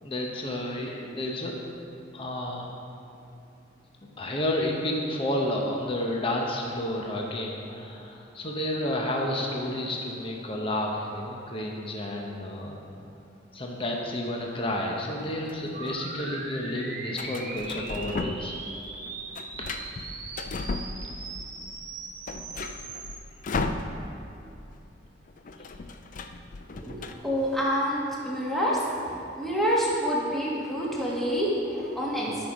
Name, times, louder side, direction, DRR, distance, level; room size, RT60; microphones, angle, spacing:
voice 1, 0.0-1.5 2.1-2.7 4.0-12.8 13.5-18.6 19.6-19.7 21.2-21.3 25.6-25.7, left 1 dB, 30° left, 0 dB, 0.9 m, -31 dB
sound 1, 15.2-16.0 17.1-18.6 18.9-21.4 21.8-21.9 22.1-24.3 24.6-24.8 25.0-27.1, left 3 dB, 45° left, 0.5 m, -35 dB
sound 2, 15.7-23.2, right 3 dB, 45° right, 1.3 m, -40 dB
voice 2, 26.8-28.8 29.4-32.4, equal, ahead, -5 dB, 1.6 m, -27 dB
12.0 x 6.2 x 5.1 m, 2.7 s
head